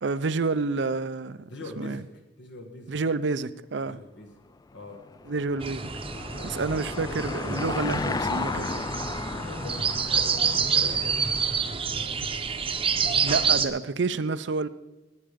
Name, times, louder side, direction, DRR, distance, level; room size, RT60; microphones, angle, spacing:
voice 1, 0.0-1.5 1.8-2.0 2.9-4.0 5.3-5.9 6.4-8.9 13.2-14.7, right 4 dB, 70° right, 14 dB, 0.6 m, -29 dB
voice 2, 1.5-2.9 3.8-4.4 4.7-5.1 6.2-6.6 9.3-12.1, left 2 dB, 80° left, 3 dB, 1.5 m, -43 dB
Car passing by / Engine, 4.8-11.6, left 3 dB, 20° left, 0.4 m, -34 dB
sound 1, 5.6-13.7, right 6 dB, 30° right, 0.8 m, -28 dB
18.0 x 8.7 x 5.1 m, 1.1 s
head